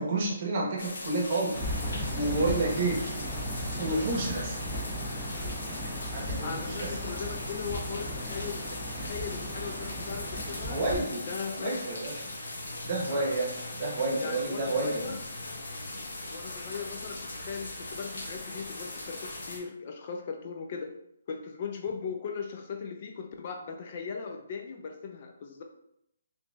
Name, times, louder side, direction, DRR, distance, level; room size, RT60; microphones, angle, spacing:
voice 1, 0.0-1.6 2.1-3.1 3.7-4.5 6.1-6.9 10.7-11.3 11.5-12.2 12.8-15.1, right 2 dB, 35° right, -1 dB, 0.9 m, -30 dB
sound 1, 0.8-19.6, left 2 dB, 75° left, 1.0 m, -40 dB
sound 2, 1.5-11.0, equal, ahead, 0.8 m, -36 dB
voice 2, 6.4-10.8 11.3-11.9 13.1-13.4 14.2-15.2 16.3-20.9 21.3-25.6, left 6 dB, 40° left, 3 dB, 0.4 m, -38 dB
4.7 x 2.7 x 2.3 m, 0.78 s
hypercardioid pair, 165°, 0 cm